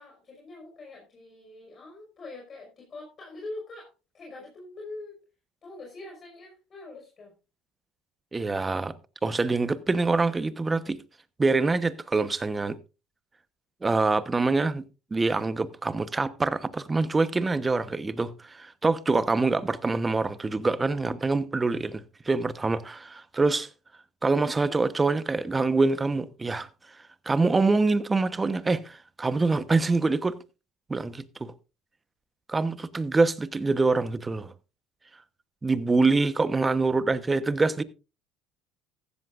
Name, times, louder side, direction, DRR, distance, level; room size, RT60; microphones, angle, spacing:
voice 1, 0.0-3.9 4.1-5.2 5.6-7.3, left 2 dB, 35° left, 5.3 m, -43 dB
voice 2, 8.3-8.9 9.2-11.0 11.4-12.8 13.8-14.8 15.1-23.7 24.2-26.7 27.3-30.3 30.9-31.5 32.5-34.5 35.6-37.8, right 3 dB, 20° right, 1.0 m, -25 dB
15.0 x 13.5 x 2.5 m
supercardioid pair, 100°, 0 cm